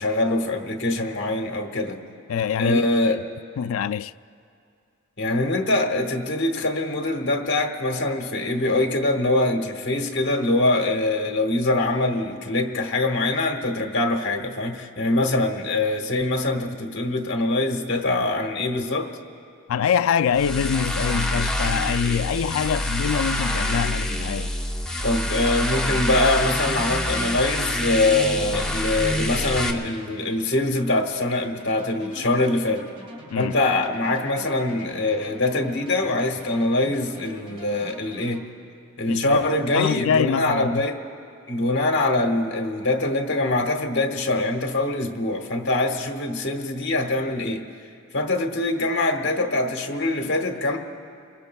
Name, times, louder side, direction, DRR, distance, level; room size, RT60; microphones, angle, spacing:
voice 1, 0.0-2.0 2.6-3.2 5.2-19.1 25.0-32.8 33.3-38.5 39.0-41.0 41.5-47.6 48.1-50.8, left 2 dB, 60° left, 1.4 m, -23 dB
voice 2, 2.3-3.1 3.6-4.1 19.7-24.5 33.3-33.5 39.1-39.5 39.7-40.8, left 7 dB, 75° left, 0.3 m, -24 dB
sound 1, 20.3-29.7, left 1 dB, 5° left, 0.9 m, -26 dB
sound 2, 31.6-38.4, right 1 dB, 25° right, 1.8 m, -44 dB
28.0 x 21.5 x 2.3 m
head